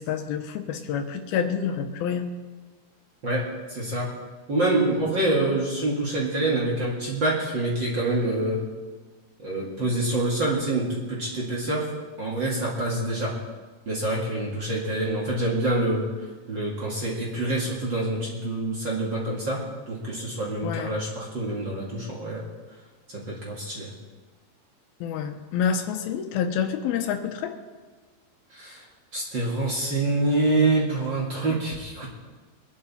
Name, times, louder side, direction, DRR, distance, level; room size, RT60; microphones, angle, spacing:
voice 1, 0.0-2.3 20.6-20.9 25.0-27.6, left 7 dB, 85° left, 6 dB, 2.8 m, -28 dB
voice 2, 3.2-4.2 4.5-8.6 9.4-11.9 12.2-13.4 13.9-16.1 16.5-22.5 23.1-23.9 28.5-28.8 29.1-32.1, right 2 dB, 35° right, -4 dB, 2.2 m, -26 dB
22.5 x 10.5 x 4.3 m, 1.3 s
omnidirectional pair, 4.3 m